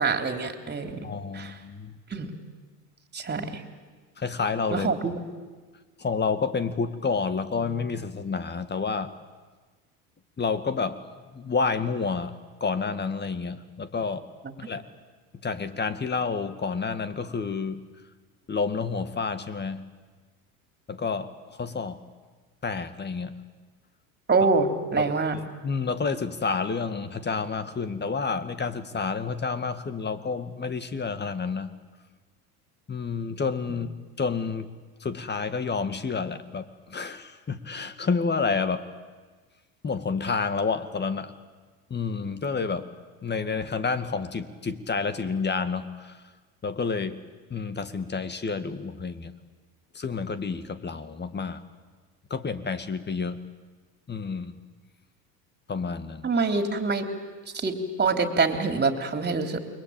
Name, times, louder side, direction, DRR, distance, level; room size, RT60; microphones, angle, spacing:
voice 1, 0.0-1.1 1.3-1.5 2.1-2.3 3.1-3.6 4.7-5.2 24.3-25.4 56.2-57.1 57.5-59.6, right 4 dB, 25° right, 6 dB, 3.8 m, -25 dB
voice 2, 1.0-2.0 4.2-4.9 6.0-9.1 10.4-11.0 11.3-14.3 14.6-14.9 15.4-17.8 18.5-19.9 20.9-22.0 22.6-23.3 25.0-31.7 32.9-33.9 34.2-34.7 35.0-38.8 39.8-41.3 41.9-42.9 43.2-46.1 46.6-47.2 47.5-49.3 49.9-51.6 52.3-53.4 54.1-54.6 55.7-56.3, left 5 dB, 25° left, 12 dB, 2.0 m, -29 dB
29.0 x 22.5 x 9.0 m, 1.4 s
hypercardioid pair, 90°, 44 cm